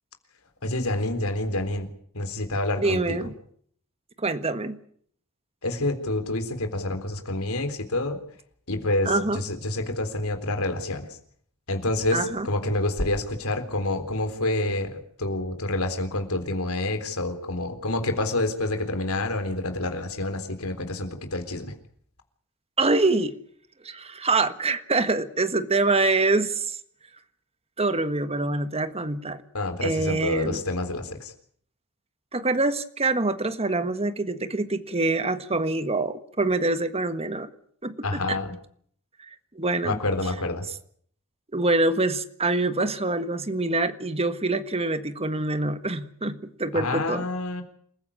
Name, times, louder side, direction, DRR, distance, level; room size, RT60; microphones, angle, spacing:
voice 1, 0.6-1.9 2.1-3.0 5.6-8.2 8.7-11.1 11.7-21.7 29.5-31.3 38.0-38.5 39.8-40.6 46.7-47.6, left 2 dB, 75° left, 7 dB, 3.8 m, -28 dB
voice 2, 2.8-3.3 4.2-4.8 9.0-9.4 12.1-12.5 22.8-23.3 23.8-26.8 27.8-29.4 29.8-30.6 32.3-37.5 37.8-38.4 39.5-40.0 41.5-47.3, right 2 dB, 30° right, 10 dB, 1.6 m, -25 dB
28.0 x 15.5 x 8.6 m, 0.62 s
head